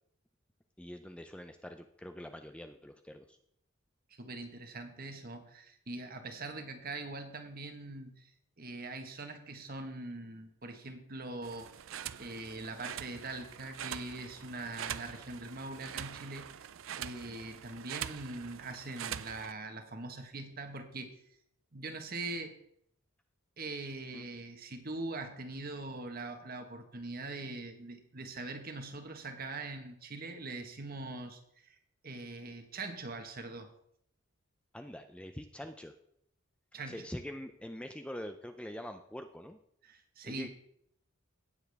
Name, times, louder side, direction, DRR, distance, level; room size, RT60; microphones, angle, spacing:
voice 1, 0.8-3.4 17.3-17.4 24.1-24.3 34.7-35.9 36.9-39.6 40.2-40.5, equal, 5° left, 7 dB, 0.4 m, -44 dB
voice 2, 4.1-8.3 8.6-16.6 16.9-21.2 21.7-22.6 23.6-31.8 32.0-33.7 36.7-37.0 39.8-40.5, right 2 dB, 45° right, 6 dB, 1.4 m, -42 dB
sound 1, 11.4-19.5, right 10 dB, 70° right, 0.4 m, -44 dB
18.0 x 7.1 x 3.5 m, 0.71 s
head